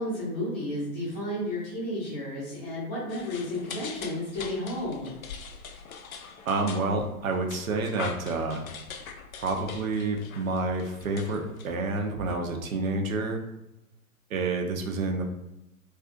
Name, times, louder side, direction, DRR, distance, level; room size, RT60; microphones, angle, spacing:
voice 1, 0.0-5.1, left 1 dB, 15° left, -9 dB, 0.5 m, -32 dB
sound 1, 3.1-12.1, left 5 dB, 70° left, 0.5 m, -43 dB
voice 2, 6.5-8.6 9.4-13.4 14.3-15.2, right 3 dB, 65° right, 3 dB, 0.6 m, -29 dB
2.4 x 2.4 x 2.5 m, 0.89 s
figure-of-eight pair, 115°, 44 cm